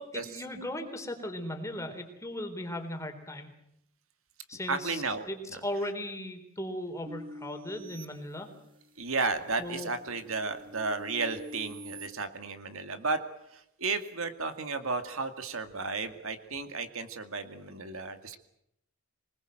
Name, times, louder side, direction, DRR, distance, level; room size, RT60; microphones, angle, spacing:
voice 1, 0.0-3.5 4.5-8.5 9.6-9.9, left 1 dB, 15° left, 4 dB, 3.8 m, -37 dB
voice 2, 4.7-5.6 9.0-13.2 13.5-18.4, right 3 dB, 70° right, 8 dB, 2.2 m, -33 dB
sound 1, 7.1-9.0 9.5-12.1, equal, 25° right, 1.8 m, -46 dB
26.5 x 20.0 x 7.7 m, 0.78 s
head